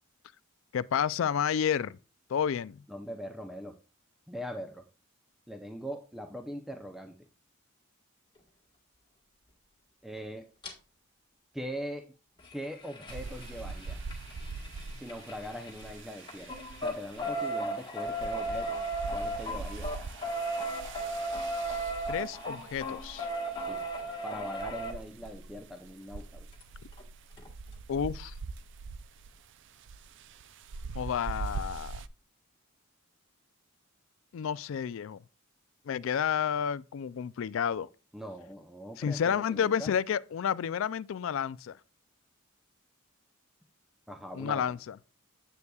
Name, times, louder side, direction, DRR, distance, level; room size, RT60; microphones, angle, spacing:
voice 1, 0.7-2.0 2.3-2.8 22.1-23.3 27.9-28.3 31.0-32.0 34.3-35.2 35.9-37.9 39.0-41.8 44.3-45.0, left 8 dB, 65° left, 0.3 m, -30 dB
voice 2, 2.9-3.8 4.3-4.8 5.5-7.1 10.0-10.5 11.5-12.1 12.5-14.0 15.0-18.8 19.1-19.9 23.6-23.8 24.2-26.5 38.1-39.9 44.1-44.7, equal, ahead, 0.6 m, -41 dB
sound 1, 10.6-10.7 12.4-15.9 16.2-24.9 26.6-26.7 27.0-27.1 27.4-27.5, right 1 dB, 20° left, 1.5 m, -35 dB
sound 2, 13.1-32.1, right 4 dB, 60° right, 0.4 m, -43 dB
9.6 x 8.0 x 2.3 m
head